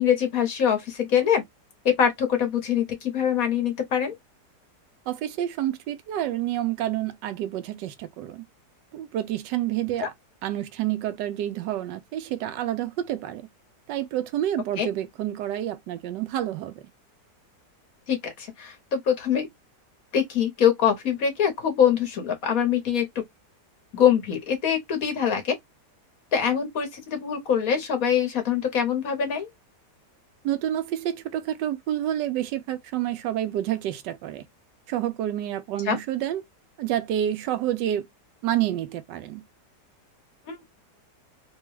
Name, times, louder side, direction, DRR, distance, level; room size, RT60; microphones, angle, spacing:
voice 1, 0.0-1.4 1.8-4.2 10.0-10.1 14.8-14.9 18.1-19.5 20.1-23.2 23.9-25.5 26.3-29.5 35.9-36.0 40.5-40.6, left 8 dB, 60° left, 1.4 m, -24 dB
voice 2, 5.1-8.4 8.9-10.1 10.4-13.5 13.9-16.9 30.4-34.4 34.9-36.4 36.8-38.0 38.4-39.4, right 12 dB, 90° right, 1.2 m, -28 dB
3.4 x 2.3 x 3.0 m
omnidirectional pair, 1.8 m